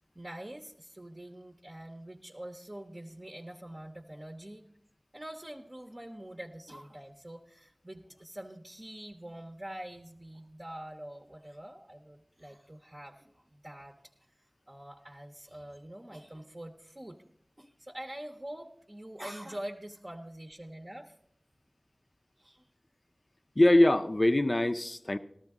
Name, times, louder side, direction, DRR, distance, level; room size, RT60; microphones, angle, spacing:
voice 1, 0.1-4.6 5.1-14.0 14.7-17.2 17.6-21.1 22.4-22.7, right 1 dB, 35° right, 2 dB, 0.8 m, -45 dB
voice 2, 23.6-25.2, left 1 dB, 40° left, 9 dB, 0.5 m, -23 dB
13.5 x 13.5 x 3.6 m, 0.74 s
wide cardioid pair, 60°, 0 cm